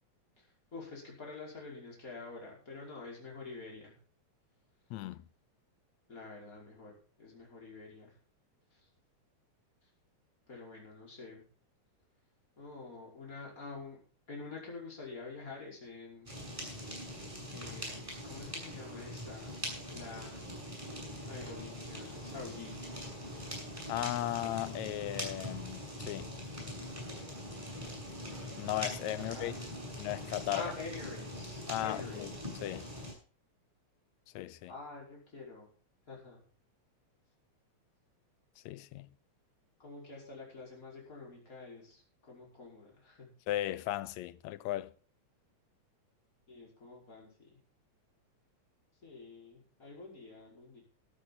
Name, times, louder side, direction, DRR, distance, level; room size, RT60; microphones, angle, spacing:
voice 1, 0.4-4.0 6.1-8.1 8.7-8.8 10.5-11.4 12.6-14.0 14.3-16.3 17.5-19.6 19.9-20.8 21.3-22.8 29.2-29.9 30.5-32.3 34.7-35.7 36.1-36.4 39.8-43.3 46.5-47.6 49.0-50.8, left 3 dB, 25° left, 5.8 m, -47 dB
voice 2, 4.9-5.2 23.9-26.3 28.6-29.5 30.0-30.7 31.7-32.3 32.6-32.9 34.4-34.7 38.7-39.1 43.5-44.9, left 14 dB, 75° left, 2.0 m, -36 dB
Fire, 16.3-33.1, equal, 10° right, 6.6 m, -42 dB
14.0 x 12.0 x 4.1 m
omnidirectional pair, 3.4 m